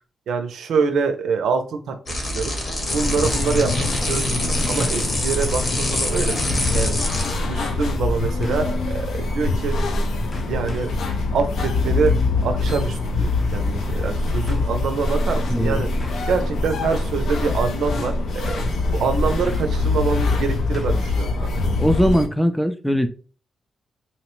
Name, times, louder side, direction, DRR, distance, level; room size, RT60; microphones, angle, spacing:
voice 1, 0.3-2.0 2.3-2.6 2.9-4.3 4.7-6.4 6.7-7.0 7.5-9.8 10.5-10.9 11.3-12.1 12.4-15.9 16.3-18.6 18.9-21.3, right 5 dB, 85° right, 7 dB, 0.4 m, -25 dB
sound 1, 2.1-7.4, left 1 dB, 55° left, 1.1 m, -25 dB
sound 2, 2.9-22.3, left 2 dB, 80° left, 0.4 m, -24 dB
sound 3, 4.8-5.1 5.6-5.7 6.6-6.9 8.4-8.8 9.7-10.0 10.3-11.1 12.7-13.0 14.0-14.1 14.5-14.7 16.0-16.4 16.8-17.1 17.4-17.5 18.4-18.8 19.4-19.8 20.7-21.1 21.4-21.5, left 1 dB, 40° left, 0.7 m, -39 dB
voice 2, 15.5-15.8 21.8-23.1, equal, ahead, 8 dB, 0.3 m, -20 dB
2.8 x 2.0 x 2.9 m, 0.37 s
cardioid pair, 70°, 0 cm